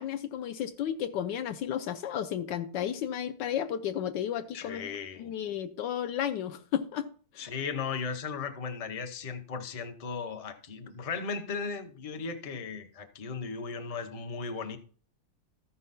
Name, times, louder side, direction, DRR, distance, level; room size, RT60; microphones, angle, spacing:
voice 1, 0.0-4.9 5.2-7.1, left 9 dB, 80° left, 1.3 m, -33 dB
voice 2, 4.5-5.3 7.4-14.8, left 5 dB, 35° left, 0.6 m, -36 dB
14.0 x 5.5 x 4.1 m
omnidirectional pair, 2.0 m